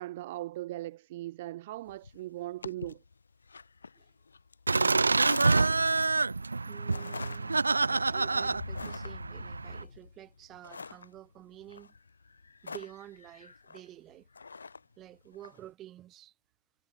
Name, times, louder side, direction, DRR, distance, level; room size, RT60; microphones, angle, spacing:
voice 1, 0.0-3.0, right 16 dB, 55° right, 1.0 m, -39 dB
sound 1, 1.9-15.6, left 4 dB, 75° left, 1.0 m, -46 dB
Laughter, 4.7-9.8, right 3 dB, 80° right, 0.4 m, -27 dB
voice 2, 6.7-12.0 12.6-14.3 15.0-16.3, right 13 dB, 35° right, 4.5 m, -50 dB
figure-of-eight pair, 90°, 0 cm